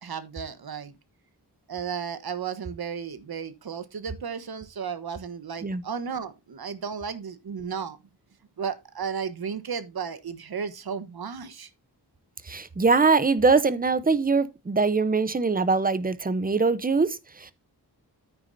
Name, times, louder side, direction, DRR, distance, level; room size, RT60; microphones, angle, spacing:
voice 1, 0.0-0.9 1.7-8.0 8.6-11.7, right 6 dB, 65° right, 1.2 m, -34 dB
voice 2, 12.4-17.5, right 4 dB, 20° right, 0.7 m, -23 dB
9.7 x 9.4 x 2.6 m
wide cardioid pair, 130°, 40 cm